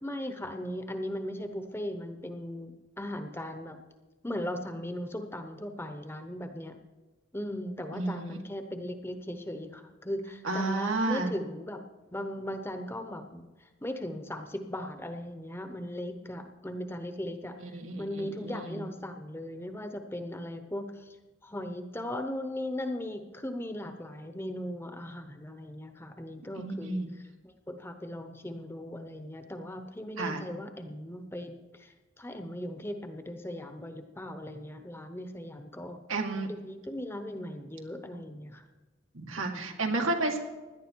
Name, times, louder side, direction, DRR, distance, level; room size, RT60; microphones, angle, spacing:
voice 1, 0.0-3.8 4.2-6.7 7.3-11.8 12.1-21.2 21.4-36.0 36.5-38.6 39.4-39.8, left 1 dB, 10° left, 7 dB, 0.9 m, -38 dB
voice 2, 7.9-8.4 10.4-11.3 17.7-18.9 26.6-27.1 30.2-30.4 36.1-36.5 39.1-40.4, right 2 dB, 85° right, 3 dB, 2.0 m, -31 dB
17.0 x 11.5 x 4.6 m, 1.2 s
head